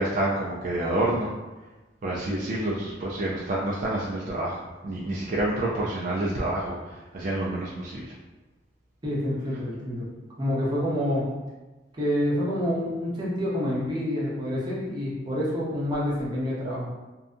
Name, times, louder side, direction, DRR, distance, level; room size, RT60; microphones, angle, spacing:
voice 1, 0.0-1.3 2.0-8.1, right 1 dB, 45° right, -5 dB, 0.3 m, -28 dB
voice 2, 9.0-10.1 10.4-11.2 12.0-16.9, left 1 dB, 25° right, -7 dB, 0.7 m, -27 dB
2.6 x 2.2 x 2.5 m, 1.2 s
head